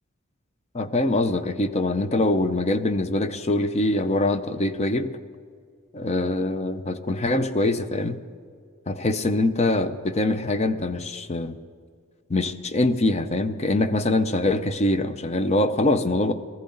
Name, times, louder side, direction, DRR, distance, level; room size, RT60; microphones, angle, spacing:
voice 1, 0.7-5.1 5.9-8.2 8.9-11.6 12.3-16.3, left 2 dB, 30° left, 11 dB, 0.6 m, -23 dB
19.5 x 14.0 x 3.9 m, 2.1 s
head